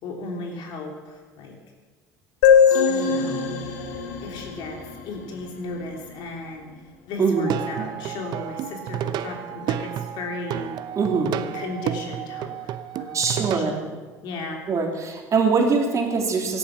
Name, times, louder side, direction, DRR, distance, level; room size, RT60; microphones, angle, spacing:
voice 1, 0.0-1.5 2.9-3.5 4.2-6.7 7.1-10.7 11.5-13.9 14.2-14.6, left 3 dB, 60° left, 2 dB, 3.3 m, -35 dB
sound 1, 2.4-6.0, left 7 dB, 75° left, 1.5 m, -21 dB
voice 2, 7.2-7.5 11.0-11.3 13.1-13.8 14.7-16.6, right 4 dB, 35° right, 2 dB, 3.0 m, -22 dB
Plucked string instrument, 7.3-13.8, right 10 dB, 55° right, 0.8 m, -31 dB
17.0 x 11.5 x 6.0 m, 1.3 s
hypercardioid pair, 65°, 9 cm